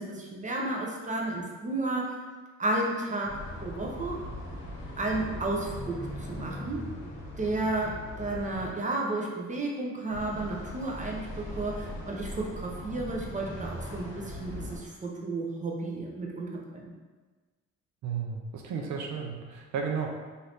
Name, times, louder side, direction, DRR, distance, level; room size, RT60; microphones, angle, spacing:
voice 1, 0.0-2.1 2.6-4.2 5.0-6.9 7.4-16.9, right 2 dB, 25° right, -1 dB, 0.6 m, -32 dB
sound 1, 3.2-8.7 10.1-14.8, left 1 dB, 40° left, 0.9 m, -40 dB
voice 2, 18.0-20.1, right 6 dB, 70° right, 2 dB, 0.5 m, -33 dB
2.7 x 2.5 x 3.3 m, 1.3 s
cardioid pair, 90°, 30 cm